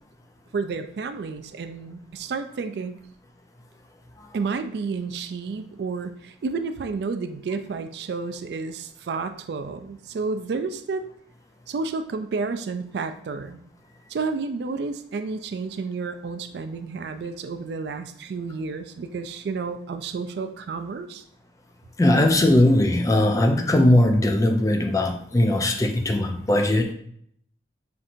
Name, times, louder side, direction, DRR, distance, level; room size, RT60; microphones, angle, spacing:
voice 1, 0.5-2.9 4.3-11.1 11.7-13.6 14.1-21.2, right 4 dB, 60° right, 9 dB, 0.3 m, -31 dB
voice 2, 22.0-26.9, left 1 dB, 20° left, 4 dB, 0.3 m, -19 dB
5.8 x 2.7 x 2.4 m, 0.65 s
head